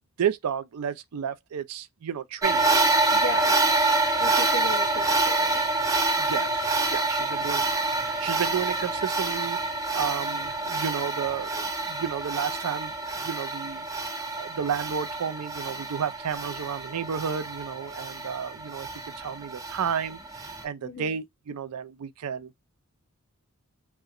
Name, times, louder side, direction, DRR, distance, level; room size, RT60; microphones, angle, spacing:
voice 1, 0.2-2.9 6.2-9.6 9.9-12.9 13.2-13.9 14.3-20.2 20.6-22.5, right 7 dB, 85° right, 0.4 m, -32 dB
sound 1, 2.4-20.6, right 3 dB, 15° right, 0.4 m, -27 dB
voice 2, 3.1-3.6 4.2-5.6 20.8-21.2, left 2 dB, 55° left, 0.7 m, -35 dB
2.8 x 2.1 x 2.4 m
head